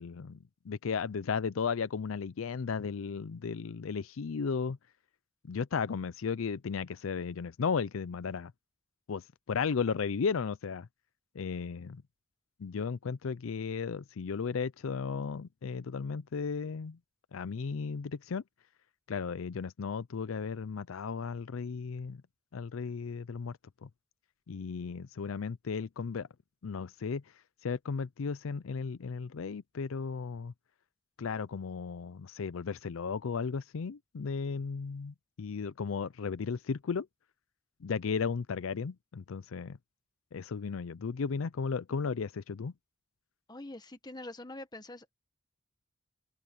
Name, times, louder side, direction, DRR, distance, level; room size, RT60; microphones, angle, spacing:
voice 1, 0.0-4.8 5.4-8.5 9.1-10.9 11.3-12.0 12.6-17.0 17.3-18.4 19.1-22.2 22.5-23.9 24.5-26.3 26.6-27.2 27.6-30.5 31.2-37.1 37.8-39.8 40.3-42.7, left 5 dB, 80° left, 0.5 m, -35 dB
voice 2, 43.5-45.1, left 2 dB, 20° left, 1.2 m, -44 dB
open air
head